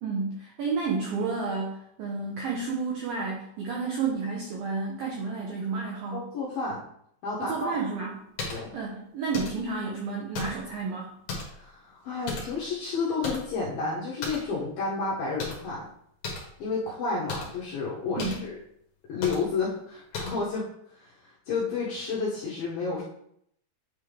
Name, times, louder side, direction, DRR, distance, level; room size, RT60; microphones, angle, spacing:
voice 1, 0.0-6.2 7.4-8.2 8.7-11.1 18.2-18.5, right 4 dB, 80° right, -2 dB, 2.0 m, -31 dB
voice 2, 6.1-6.8 7.2-7.7 8.5-8.7 11.6-15.9 16.6-18.6 19.1-23.0, left 4 dB, 75° left, -5 dB, 2.2 m, -31 dB
sound 1, 8.4-8.6 9.3-9.7 10.3-10.7 11.3-11.6 12.3-12.7 13.2-13.6 14.2-14.5 15.4-15.7 16.2-16.5 17.3-17.5 18.2-18.5 19.2-19.5 20.1-20.5, left 3 dB, 60° left, 2.2 m, -35 dB
8.8 x 3.6 x 3.3 m, 0.71 s
omnidirectional pair, 5.3 m